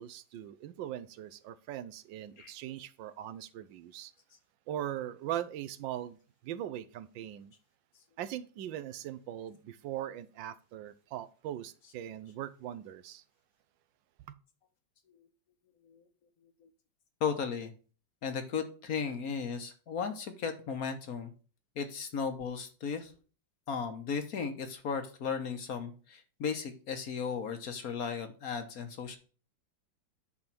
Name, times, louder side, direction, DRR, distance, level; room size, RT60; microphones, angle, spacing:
voice 1, 0.0-4.1 4.7-6.2 6.4-7.5 8.2-13.2, right 11 dB, 80° right, 1.3 m, -40 dB
voice 2, 17.2-17.7 18.2-21.3 21.8-23.1 23.7-29.2, left 6 dB, 55° left, 1.3 m, -35 dB
9.9 x 3.7 x 6.0 m
omnidirectional pair, 2.0 m